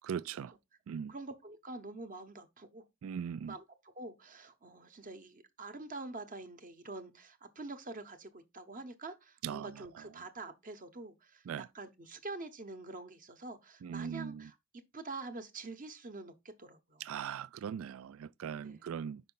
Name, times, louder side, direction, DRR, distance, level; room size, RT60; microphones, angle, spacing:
voice 1, 0.0-0.5 0.9-1.1 3.0-3.5 9.4-9.7 11.5-11.7 13.8-14.5 17.0-19.2, right 8 dB, 80° right, 0.3 m, -39 dB
voice 2, 1.1-2.8 3.5-3.6 3.9-14.6 14.9-17.1 18.6-18.9, right 3 dB, 40° right, 0.9 m, -46 dB
5.5 x 5.2 x 3.8 m
head